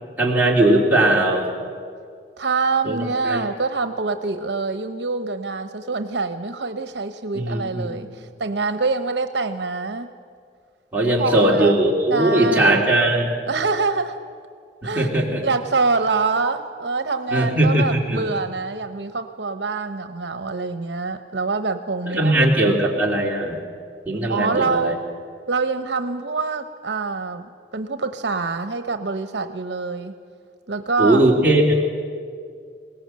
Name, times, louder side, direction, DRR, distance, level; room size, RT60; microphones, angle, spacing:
voice 1, 0.2-1.4 2.8-3.0 3.2-3.4 7.3-8.1 10.9-13.3 14.8-15.4 17.3-18.3 22.1-23.6 24.0-24.9 31.0-31.7, right 1 dB, 10° right, -3 dB, 3.1 m, -19 dB
voice 2, 2.4-10.1 11.2-11.8 12.1-12.8 13.5-14.2 14.8-15.1 15.4-22.3 22.6-22.8 24.3-25.0 25.5-30.1 30.7-31.2, right 4 dB, 80° right, 9 dB, 0.9 m, -25 dB
21.0 x 18.5 x 7.6 m, 2.2 s
head